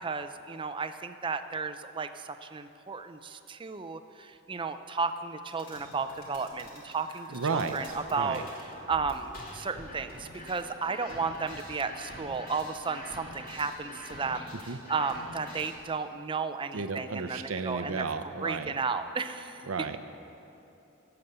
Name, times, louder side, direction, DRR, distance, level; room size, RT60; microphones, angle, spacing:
voice 1, 0.0-8.4 8.9-14.5 14.9-18.1 18.4-19.9, right 4 dB, 25° right, 9 dB, 0.5 m, -33 dB
sound 1, 5.5-15.8, left 1 dB, 45° left, 2.7 m, -46 dB
voice 2, 7.3-8.5 14.7-14.8 16.7-18.8 19.7-20.2, right 4 dB, 70° right, 8 dB, 0.6 m, -33 dB
17.0 x 7.0 x 8.1 m, 2.8 s
head